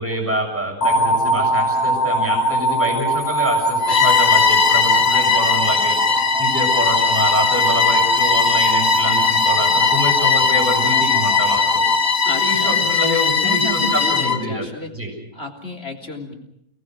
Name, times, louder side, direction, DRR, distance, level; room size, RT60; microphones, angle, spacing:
voice 1, 0.0-6.0 6.4-11.8 12.4-14.6 14.9-15.1, equal, 10° right, 1 dB, 7.1 m, -26 dB
sound 1, 0.8-13.0, right 1 dB, 80° left, 2.1 m, -22 dB
Bowed string instrument, 3.8-14.4, left 6 dB, 60° left, 1.9 m, -19 dB
voice 2, 12.2-12.9 13.4-15.0 15.3-16.3, left 1 dB, 45° left, 1 dB, 3.8 m, -31 dB
29.5 x 20.0 x 6.3 m, 0.78 s
omnidirectional pair, 1.6 m